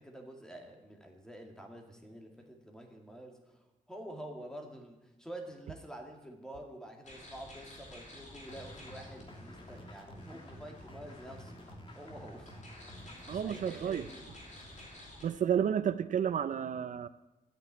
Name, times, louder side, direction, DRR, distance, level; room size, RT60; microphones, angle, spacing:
voice 1, 0.0-11.6 12.0-12.5 13.0-14.3, right 1 dB, 5° left, 3 dB, 2.1 m, -48 dB
sound 1, 7.0-15.2, left 1 dB, 55° left, 4.0 m, -52 dB
sound 2, 8.5-14.9, equal, 35° left, 1.9 m, -51 dB
voice 2, 13.3-14.0 15.2-17.1, right 8 dB, 60° right, 13 dB, 0.5 m, -31 dB
12.0 x 9.1 x 9.5 m, 0.99 s
wide cardioid pair, 170°, 15 cm